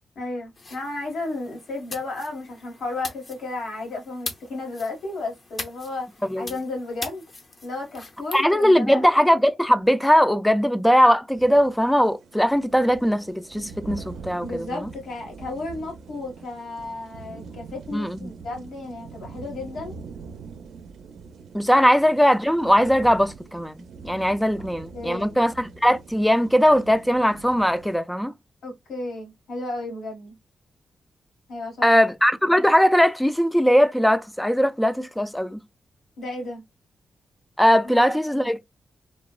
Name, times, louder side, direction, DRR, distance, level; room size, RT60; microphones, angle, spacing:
voice 1, 0.1-6.1 6.4-7.2 7.6-9.1 14.4-19.9 21.8-21.9 24.9-25.4 28.6-30.3 31.5-31.9 36.2-36.6 37.8-38.0 38.3-38.5, left 2 dB, 85° left, 1.4 m, -33 dB
sound 1, 0.6-8.4, left 2 dB, 40° left, 0.6 m, -41 dB
voice 2, 8.3-14.9 17.9-18.3 21.5-23.8 24.0-28.3 31.8-35.6 37.6-38.7, equal, 5° left, 0.3 m, -20 dB
sound 2, 11.3-28.0, right 5 dB, 90° right, 0.5 m, -43 dB
3.2 x 2.0 x 2.2 m
wide cardioid pair, 110°, 0 cm